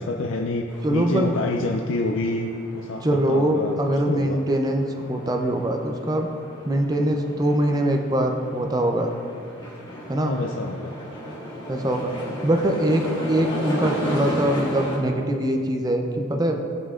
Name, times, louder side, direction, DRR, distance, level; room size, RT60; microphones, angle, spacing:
voice 1, 0.0-3.8 4.1-4.4 10.2-10.9, left 2 dB, 70° left, 2 dB, 0.4 m, -27 dB
sound 1, 0.7-15.0, equal, 25° left, 1.5 m, -35 dB
voice 2, 0.8-1.3 3.0-6.3 6.6-9.1 10.1-10.4 11.7-12.1 12.4-16.6, right 1 dB, 20° right, 3 dB, 0.5 m, -23 dB
14.5 x 5.4 x 2.5 m, 2.5 s
head